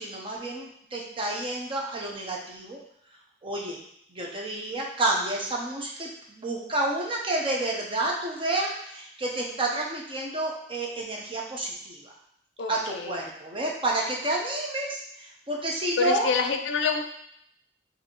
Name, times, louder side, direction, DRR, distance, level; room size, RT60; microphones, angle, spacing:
voice 1, 0.0-2.8 3.4-3.8 4.1-12.1 12.7-16.3, right 2 dB, 30° right, -1 dB, 0.7 m, -30 dB
voice 2, 12.6-13.2 16.0-17.0, left 5 dB, 70° left, 6 dB, 0.4 m, -27 dB
5.2 x 2.7 x 3.0 m, 0.70 s
head